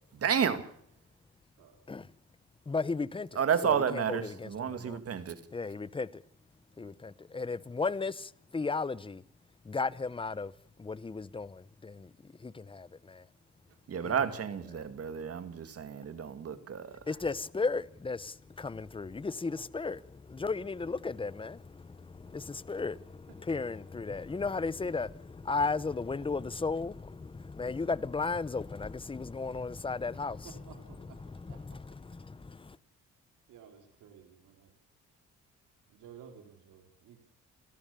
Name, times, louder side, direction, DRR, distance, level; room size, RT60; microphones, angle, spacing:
voice 1, 0.2-0.6 3.4-5.4 13.9-17.0, right 7 dB, 50° right, 2.2 m, -31 dB
voice 2, 1.6-2.1 13.7-13.8 23.3-23.6 30.1-31.2 31.5-31.8 33.5-34.7 35.9-37.2, right 8 dB, 85° right, 3.4 m, -54 dB
voice 3, 2.7-3.3 3.6-5.0 5.5-6.2 6.8-9.2 9.7-10.5 10.8-12.1 12.4-13.2 14.0-14.1 17.1-30.5 32.0-32.8, left 4 dB, 15° left, 0.8 m, -35 dB
28.5 x 13.0 x 7.0 m
cardioid pair, 90°, 30 cm